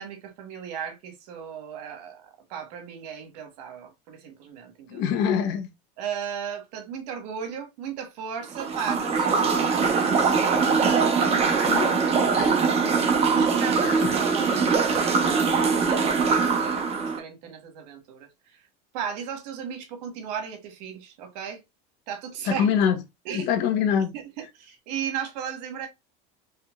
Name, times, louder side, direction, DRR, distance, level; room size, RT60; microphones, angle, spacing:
voice 1, 0.0-5.2 6.0-13.0 13.3-18.6 18.9-21.6 22.1-22.7 23.2-23.5 24.1-25.9, right 8 dB, 80° right, 1.4 m, -36 dB
voice 2, 4.9-5.7 11.6-11.9 12.4-12.6 13.8-14.1 22.5-23.0 23.3-24.1, left 8 dB, 60° left, 1.1 m, -24 dB
sound 1, 8.5-17.2, right 5 dB, 30° right, 1.0 m, -22 dB
4.4 x 3.4 x 2.4 m
supercardioid pair, 115°, 21 cm